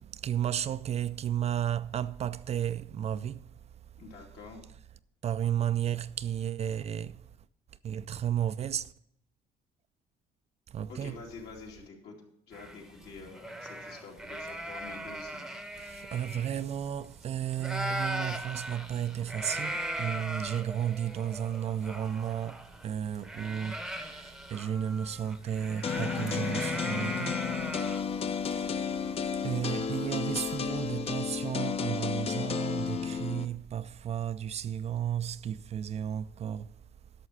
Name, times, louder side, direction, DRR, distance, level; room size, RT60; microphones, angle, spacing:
voice 1, 0.0-3.8 5.2-7.4 7.8-8.9 10.7-11.2 15.8-27.7 28.4-28.9 29.4-36.8, right 10 dB, 40° right, 0.4 m, -33 dB
voice 2, 4.0-4.6 10.9-12.2 12.5-15.4 28.2-28.8, left 4 dB, 75° left, 2.7 m, -47 dB
sound 1, 12.5-17.3 17.5-30.4, right 1 dB, ahead, 0.8 m, -39 dB
sound 2, 25.8-33.4, left 6 dB, 35° left, 0.6 m, -32 dB
11.0 x 6.5 x 5.6 m
cardioid pair, 110°, 17 cm